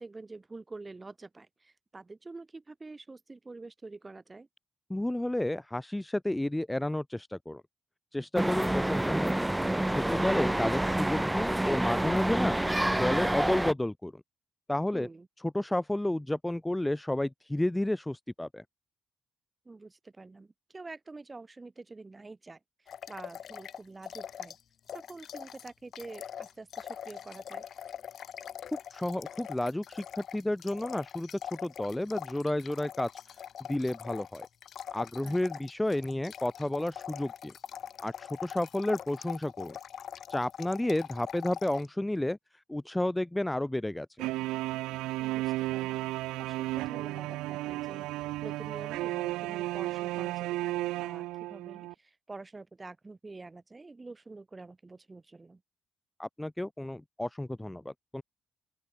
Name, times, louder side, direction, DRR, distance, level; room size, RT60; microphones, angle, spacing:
voice 1, 0.0-4.5 14.9-15.3 19.6-24.6 24.9-27.6 35.2-35.6 45.2-46.0 46.4-55.6, right 3 dB, 30° right, 6.8 m, -47 dB
voice 2, 4.9-7.6 8.1-9.4 9.9-12.6 13.0-14.2 14.7-15.1 15.5-18.6 28.9-33.1 33.7-34.5 34.9-37.5 38.0-39.8 40.3-42.4 42.7-44.1 56.2-58.2, left 1 dB, 10° left, 1.0 m, -31 dB
sound 1, 8.4-13.7, right 1 dB, 10° right, 0.6 m, -28 dB
sound 2, 22.9-24.6 24.9-41.9, left 9 dB, 60° left, 0.9 m, -43 dB
sound 3, 44.2-51.9, right 18 dB, 75° right, 0.3 m, -33 dB
open air
hypercardioid pair, 40°, 0 cm